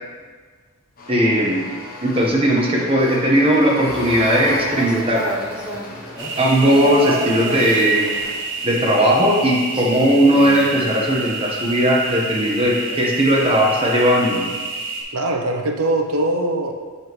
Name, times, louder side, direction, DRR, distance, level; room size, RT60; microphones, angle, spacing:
sound 1, 1.0-8.3, left 2 dB, 40° left, 0.9 m, -36 dB
voice 1, 1.1-1.6 2.0-5.3 6.4-8.1 8.6-14.5, equal, 25° right, -3 dB, 1.1 m, -17 dB
sound 2, 3.9-13.4, right 1 dB, 5° right, 0.7 m, -32 dB
sound 3, 6.2-15.0, right 3 dB, 55° right, 1.0 m, -29 dB
voice 2, 15.1-16.7, right 1 dB, 85° right, 2 dB, 0.7 m, -21 dB
7.2 x 5.5 x 3.1 m, 1.5 s
head